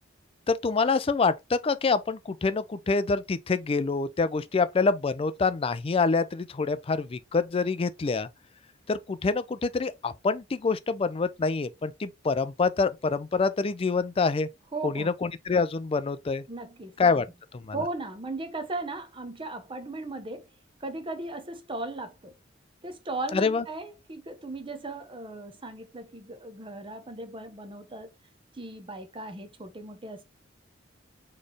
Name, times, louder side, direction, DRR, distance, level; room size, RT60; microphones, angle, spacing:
voice 1, 0.5-8.3 8.9-14.5 14.8-16.4 17.0-17.3 17.5-17.8 23.3-23.6, left 4 dB, 30° left, 0.4 m, -26 dB
voice 2, 14.7-15.1 16.5-16.9 17.7-20.5 20.8-22.3 22.8-28.1 28.5-30.2, right 2 dB, 25° right, 0.7 m, -37 dB
4.2 x 3.2 x 3.3 m
head